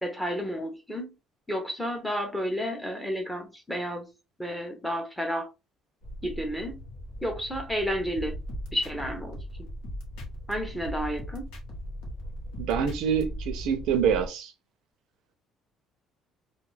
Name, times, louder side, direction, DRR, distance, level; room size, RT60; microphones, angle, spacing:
voice 1, 0.0-1.1 1.5-4.1 4.4-5.5 6.2-6.8 7.2-8.4 8.7-9.4 10.5-11.5, equal, 5° left, 0.6 m, -31 dB
sound 1, 6.0-14.3, equal, 65° left, 1.0 m, -40 dB
sound 2, 8.2-10.5 10.8-13.2, equal, 85° left, 0.9 m, -41 dB
voice 2, 12.6-14.5, right 7 dB, 70° right, 0.5 m, -26 dB
2.3 x 2.2 x 3.1 m
cardioid pair, 175°, 0 cm